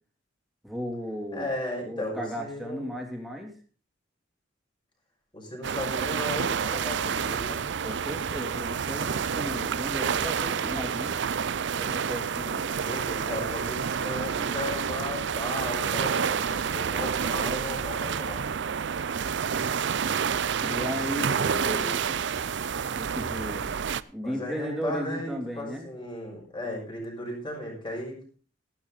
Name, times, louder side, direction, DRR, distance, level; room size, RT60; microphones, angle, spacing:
voice 1, 0.6-1.5 1.8-3.5 7.8-11.1 11.7-12.6 20.6-22.2 22.9-23.7 24.1-25.9, equal, ahead, 0 dB, 3.1 m, -35 dB
voice 2, 1.3-2.9 5.3-7.6 12.7-18.5 24.2-28.3, left 1 dB, 25° left, -1 dB, 5.7 m, -35 dB
sound 1, 5.6-24.0, right 7 dB, 65° right, 0.5 m, -29 dB
14.0 x 12.0 x 4.0 m, 0.39 s
head